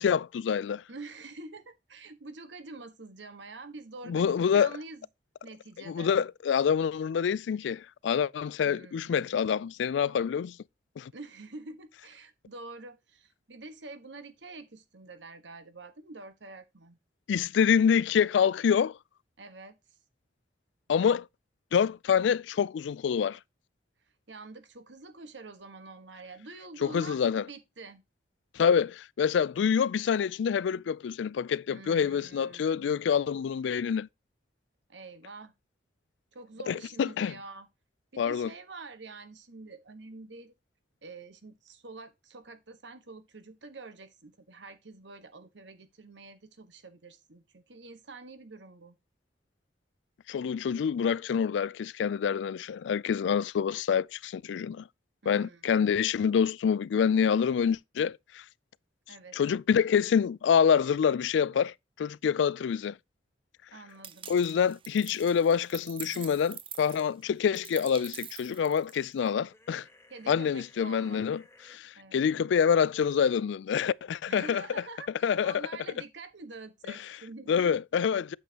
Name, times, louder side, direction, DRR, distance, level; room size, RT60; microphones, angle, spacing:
voice 1, 0.0-0.8 4.1-4.7 5.9-10.6 11.0-11.1 17.3-19.0 20.9-21.3 21.7-23.4 26.8-27.4 28.5-34.1 36.7-37.3 38.2-38.5 50.3-54.8 55.3-58.4 59.3-63.0 64.3-69.8 70.3-71.4 71.7-74.6 75.2-75.7 77.5-78.4, left 7 dB, 70° left, 0.3 m, -26 dB
voice 2, 0.9-5.1 5.4-6.1 8.6-9.4 11.1-17.0 19.4-19.8 24.3-28.0 31.7-32.9 34.9-35.5 36.3-37.7 38.1-40.5 41.0-49.0 55.2-55.7 59.1-59.4 63.7-64.3 70.1-71.3 72.0-72.2 74.3-77.8, right 3 dB, 75° right, 1.3 m, -46 dB
sound 1, 64.0-69.3, right 9 dB, 30° right, 0.6 m, -45 dB
sound 2, 69.5-71.8, left 2 dB, 15° left, 1.1 m, -58 dB
8.8 x 7.3 x 2.9 m
head